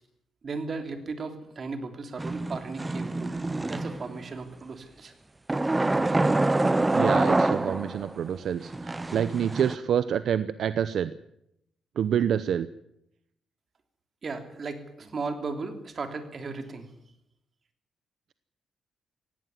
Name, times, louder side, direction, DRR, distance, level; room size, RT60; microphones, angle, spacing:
voice 1, 0.4-5.1 14.2-16.9, right 4 dB, 40° right, 7 dB, 3.3 m, -36 dB
sound 1, 2.2-4.2 5.5-8.1 8.7-9.8, right 2 dB, 15° right, 0.8 m, -26 dB
voice 2, 6.9-11.1 12.0-12.7, right 9 dB, 70° right, 14 dB, 0.8 m, -27 dB
17.5 x 17.0 x 9.6 m, 0.79 s
cardioid pair, 105°, 0 cm